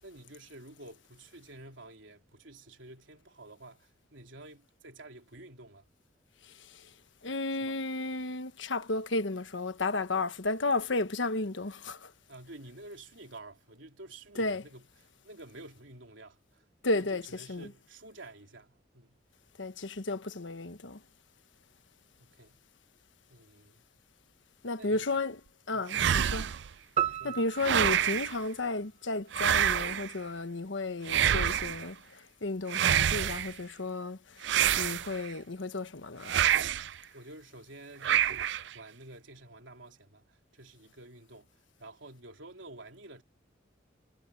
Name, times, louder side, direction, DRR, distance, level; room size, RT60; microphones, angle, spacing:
voice 1, 0.0-5.8 7.5-7.8 12.3-19.2 22.2-22.6 23.3-23.8 24.8-25.2 25.7-26.4 27.1-27.4 37.1-41.5 41.8-43.2, right 2 dB, 80° right, 3.4 m, -50 dB
voice 2, 7.2-12.1 14.4-14.6 16.8-17.2 17.5-17.7 19.6-21.0 24.6-25.4 25.7-26.5 27.2-32.0 32.4-34.2 34.8-36.3, left 2 dB, 80° left, 1.3 m, -33 dB
sound 1, 25.9-26.7 27.6-28.4 29.3-30.1 31.1-31.8 32.7-33.5 34.4-35.3 36.2-36.9 38.0-38.7, right 9 dB, 65° right, 0.4 m, -27 dB
sound 2, 27.0-29.4, right 10 dB, 35° right, 1.2 m, -35 dB
head